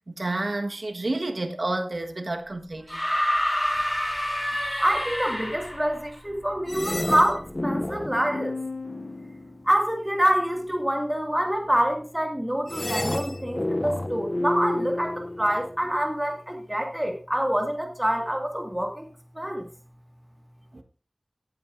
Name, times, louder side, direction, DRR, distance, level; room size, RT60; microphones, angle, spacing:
voice 1, 0.1-3.0 20.7-20.8, right 2 dB, 70° right, 1.4 m, -30 dB
sound 1, 2.9-5.9 7.2-7.3, equal, 20° left, 5.7 m, -27 dB
voice 2, 4.8-8.6 9.7-19.1 19.4-19.7, equal, 15° right, 2.1 m, -26 dB
sound 2, 6.7-9.9 12.7-15.9, left 1 dB, 35° left, 0.6 m, -30 dB
18.0 x 8.7 x 2.6 m
wide cardioid pair, 55°, 0 cm